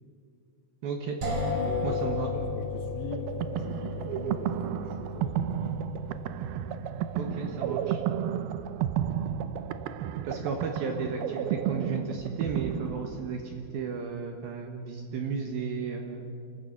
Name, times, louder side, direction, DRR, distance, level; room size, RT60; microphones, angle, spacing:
voice 1, 0.8-1.2 1.8-2.3 7.1-8.0 10.2-16.3, right 5 dB, 65° right, 3 dB, 2.8 m, -34 dB
sound 1, 1.2-11.0, left 3 dB, 35° right, 4.9 m, -36 dB
voice 2, 1.5-2.1 2.3-5.8 7.2-7.8, left 4 dB, 75° left, -4 dB, 4.4 m, -42 dB
sound 2, 3.1-13.6, right 10 dB, 80° right, 2.2 m, -32 dB
30.0 x 13.5 x 8.5 m, 2.5 s
omnidirectional pair, 5.2 m